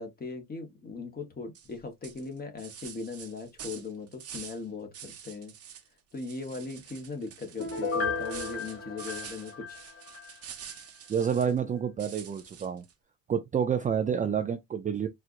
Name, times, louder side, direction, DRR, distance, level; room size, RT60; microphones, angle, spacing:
voice 1, 0.0-5.6 6.1-9.8, left 4 dB, 25° left, 1.1 m, -39 dB
sound 1, 1.5-1.7 2.0-4.6 4.9-5.9 6.1-11.6 12.0-12.9, right 8 dB, 40° right, 0.8 m, -46 dB
Piano, 7.6-10.3 10.7-10.8, left 4 dB, 40° left, 1.7 m, -34 dB
voice 2, 11.1-12.8 13.3-15.1, right 7 dB, 20° right, 0.4 m, -28 dB
4.4 x 2.4 x 2.4 m
cardioid pair, 130°, 38 cm